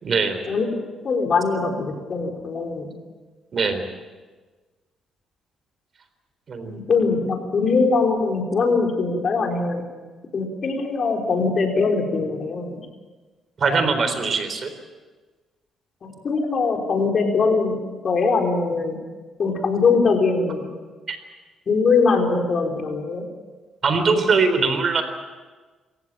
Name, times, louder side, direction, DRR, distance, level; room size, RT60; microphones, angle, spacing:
voice 1, 0.0-0.4 3.5-3.8 6.5-6.8 13.6-14.7 21.1-21.2 23.8-25.0, right 4 dB, 50° right, 9 dB, 4.0 m, -21 dB
voice 2, 1.0-2.9 6.7-9.8 10.3-12.8 16.0-17.8 18.0-19.0 19.4-20.6 21.7-23.2, left 4 dB, 50° left, 2 dB, 4.7 m, -22 dB
27.0 x 15.5 x 9.0 m, 1.3 s
cardioid pair, 90°, 0 cm